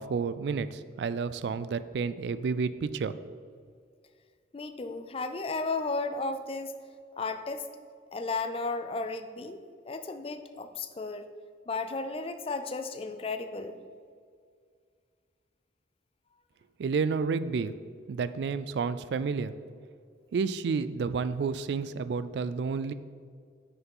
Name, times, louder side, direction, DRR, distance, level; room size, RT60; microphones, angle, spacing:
voice 1, 0.0-3.1 16.8-17.7 18.1-19.5 20.3-22.9, right 5 dB, 65° right, 14 dB, 0.3 m, -30 dB
voice 2, 4.5-6.7 7.2-7.7 8.1-11.3 11.7-13.8, left 3 dB, 30° left, 9 dB, 0.4 m, -34 dB
6.5 x 4.8 x 5.4 m, 2.1 s
head